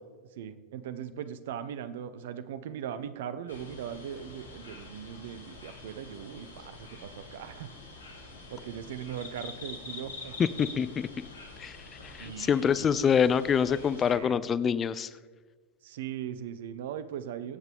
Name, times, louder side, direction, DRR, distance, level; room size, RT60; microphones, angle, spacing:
voice 1, 0.4-7.7 8.5-10.4 12.2-12.9 14.1-14.4 15.8-17.6, right 9 dB, 55° right, 13 dB, 0.8 m, -39 dB
sound 1, 3.5-14.2, left 3 dB, 70° left, 1.9 m, -46 dB
voice 2, 10.6-11.1 11.6-11.8 12.0-15.1, left 7 dB, 25° left, 16 dB, 0.4 m, -26 dB
23.5 x 8.1 x 3.6 m, 1.4 s
figure-of-eight pair, 90°, 0 cm